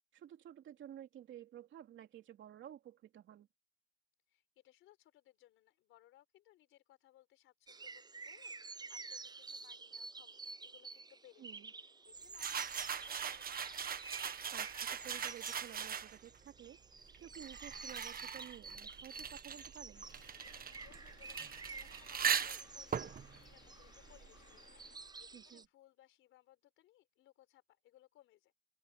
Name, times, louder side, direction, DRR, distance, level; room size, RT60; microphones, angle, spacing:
voice 1, 0.1-3.5 11.4-11.7 14.5-16.8 17.2-20.0 25.3-25.7, right 11 dB, 70° right, 3.1 m, -53 dB
voice 2, 4.3-11.5 11.8-13.7 20.5-28.5, left 14 dB, 90° left, 4.9 m, -65 dB
sound 1, 7.7-25.7, right 4 dB, 20° right, 0.7 m, -51 dB
sound 2, 12.3-16.4 17.1-24.5, right 8 dB, 45° right, 1.4 m, -40 dB
sound 3, 19.9-25.0, left 10 dB, 70° left, 2.4 m, -64 dB
open air
cardioid pair, 90°, 20 cm